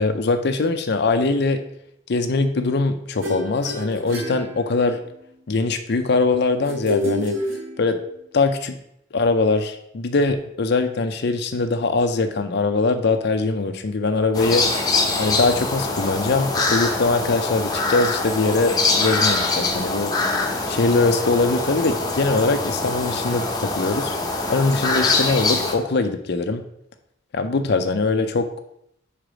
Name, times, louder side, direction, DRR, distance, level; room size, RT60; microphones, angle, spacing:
voice 1, 0.0-1.6 2.1-5.0 5.5-7.4 7.8-8.0 8.3-8.8 9.1-14.8 15.2-20.1 20.7-24.2 24.5-26.6 27.3-28.5, left 3 dB, 60° left, 7 dB, 0.6 m, -22 dB
sound 1, 3.2-5.2 6.6-8.2, left 1 dB, 85° right, 1.6 m, -28 dB
sound 2, 14.3-25.7, left 3 dB, 20° left, 1.0 m, -23 dB
5.0 x 4.9 x 6.1 m, 0.75 s
head